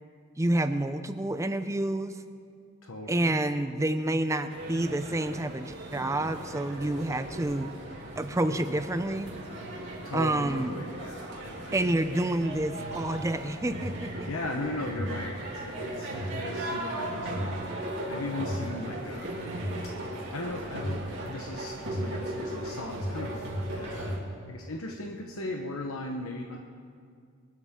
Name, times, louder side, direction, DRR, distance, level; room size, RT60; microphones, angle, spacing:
voice 1, 0.4-2.2 3.1-7.7 8.2-9.3 10.1-10.8 11.7-14.3, right 1 dB, 15° right, 10 dB, 0.5 m, -28 dB
voice 2, 2.8-3.3 10.0-11.7 12.0-12.1 14.3-19.7 20.3-24.2 24.5-26.6, left 2 dB, 75° left, 1 dB, 1.0 m, -38 dB
sound 1, 4.5-24.2, right 1 dB, 55° right, 3.1 m, -36 dB
23.5 x 12.5 x 3.7 m, 2.2 s
head